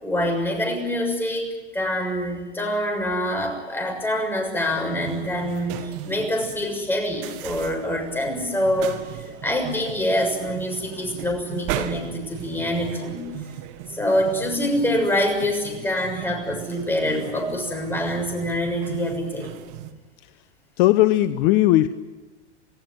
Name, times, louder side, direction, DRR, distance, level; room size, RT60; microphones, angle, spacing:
voice 1, 0.0-9.0 9.4-13.3 13.9-19.5, left 1 dB, 5° left, 2 dB, 6.7 m, -25 dB
sound 1, 4.7-19.9, right 11 dB, 50° right, 2.0 m, -37 dB
voice 2, 20.8-21.9, left 15 dB, 45° left, 11 dB, 0.9 m, -17 dB
27.0 x 16.5 x 9.8 m, 1.3 s
hypercardioid pair, 115°, 35 cm